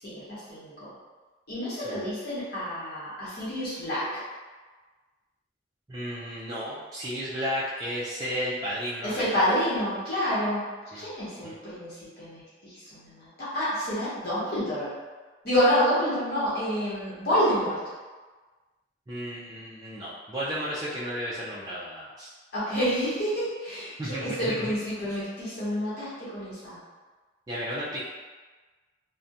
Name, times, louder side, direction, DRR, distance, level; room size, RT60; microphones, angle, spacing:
voice 1, 0.0-0.9 1.5-4.2 9.0-10.6 10.9-14.9 15.4-17.8 22.5-26.8, equal, 55° left, -11 dB, 0.9 m, -28 dB
voice 2, 5.9-9.4 10.9-11.1 11.4-11.5 19.1-22.3 24.0-24.7 25.0-25.2 27.5-28.0, equal, 20° right, -9 dB, 0.3 m, -33 dB
2.4 x 2.1 x 2.7 m, 1.3 s
head